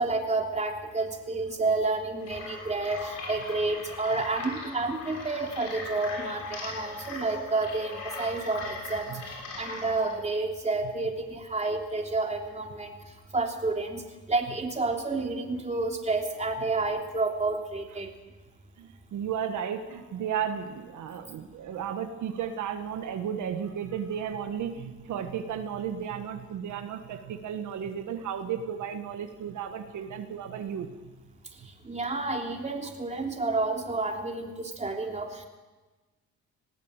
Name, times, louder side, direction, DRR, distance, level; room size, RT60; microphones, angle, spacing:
voice 1, 0.0-12.9 13.3-18.1 31.8-35.4, right 3 dB, 20° right, 2 dB, 3.3 m, -30 dB
sound 1, 2.2-10.1, left 3 dB, 90° left, 7.3 m, -40 dB
voice 2, 18.8-31.1, right 8 dB, 75° right, 6 dB, 1.6 m, -34 dB
19.5 x 15.0 x 9.1 m, 1.3 s
cardioid pair, 90°, 30 cm